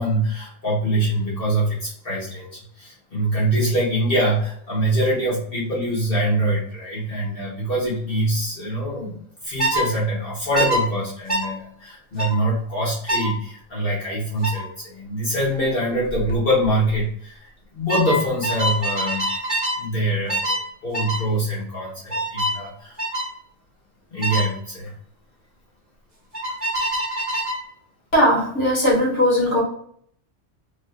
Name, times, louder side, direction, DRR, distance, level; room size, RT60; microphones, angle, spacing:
voice 1, 0.0-19.4 19.8-23.0 24.1-24.9, right 1 dB, 50° left, -6 dB, 1.0 m, -24 dB
sound 1, 9.6-9.9 10.5-10.8 11.3-11.5 12.2-12.4 13.1-13.3 14.4-14.6 16.1-16.3 16.6-17.0 17.9-19.8 20.3-20.6 20.9-21.2 22.1-22.6 23.0-23.3 24.2-24.5 26.3-27.6, right 1 dB, 20° right, 1.2 m, -24 dB
voice 2, 28.1-29.6, equal, 70° left, -5 dB, 1.7 m, -18 dB
3.3 x 2.5 x 2.4 m, 0.64 s
omnidirectional pair, 1.3 m